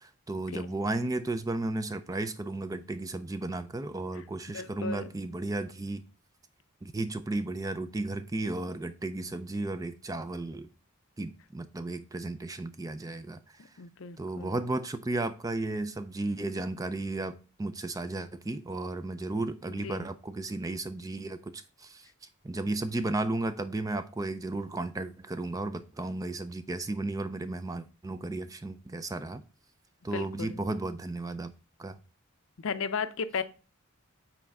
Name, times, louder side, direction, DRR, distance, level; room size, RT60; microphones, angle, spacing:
voice 1, 0.0-6.0 6.8-10.7 11.2-13.4 14.2-22.1 22.4-29.4 30.0-31.5 31.8-32.0, right 2 dB, 15° right, 0.4 m, -34 dB
voice 2, 4.5-5.1 13.8-14.5 19.8-20.1 30.1-30.6 32.6-33.4, left 5 dB, 60° left, 0.5 m, -35 dB
5.8 x 4.2 x 5.3 m
head